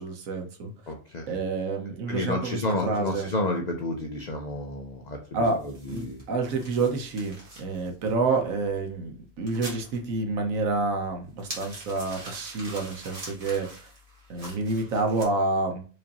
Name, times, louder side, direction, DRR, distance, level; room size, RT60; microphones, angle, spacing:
voice 1, 0.0-0.7 1.3-3.3 5.3-5.6 5.9-13.9 14.3-15.8, right 3 dB, 75° right, 4 dB, 1.2 m, -28 dB
voice 2, 0.9-1.4 2.1-5.2 5.6-6.2, left 2 dB, 70° left, 3 dB, 0.4 m, -30 dB
sound 1, 5.4-15.2, right 1 dB, 40° right, 1.5 m, -45 dB
4.8 x 2.5 x 2.8 m, 0.38 s
omnidirectional pair, 1.5 m